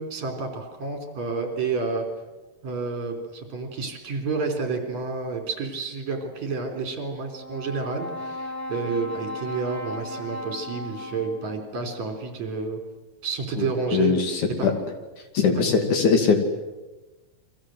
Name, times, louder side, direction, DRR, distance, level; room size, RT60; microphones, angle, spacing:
voice 1, 0.0-2.1 2.6-12.8 13.2-14.1 14.6-14.7 15.5-15.7, right 4 dB, 55° right, 4 dB, 5.0 m, -30 dB
Brass instrument, 7.3-11.7, left 1 dB, 15° right, 0.6 m, -36 dB
voice 2, 13.6-14.7 15.3-16.4, left 5 dB, 60° left, 5 dB, 3.9 m, -21 dB
30.0 x 24.0 x 7.9 m, 1.1 s
omnidirectional pair, 4.0 m